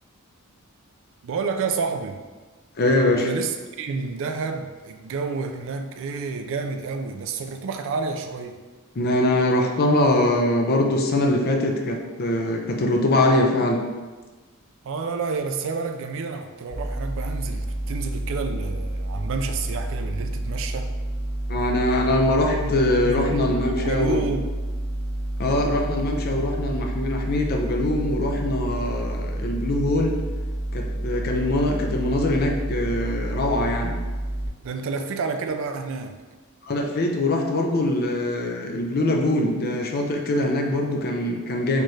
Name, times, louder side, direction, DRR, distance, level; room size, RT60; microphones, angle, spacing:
voice 1, 1.2-2.2 3.2-8.6 14.8-20.9 22.5-22.7 23.0-24.5 34.6-36.2, right 4 dB, 65° right, 6 dB, 0.3 m, -29 dB
voice 2, 2.8-3.3 9.0-13.8 21.5-24.3 25.4-30.1 30.7-33.9 36.6-41.8, left 1 dB, 45° left, 1 dB, 0.5 m, -23 dB
sound 1, 16.7-34.5, right 1 dB, 75° left, 1.2 m, -29 dB
4.4 x 2.4 x 3.1 m, 1.3 s
head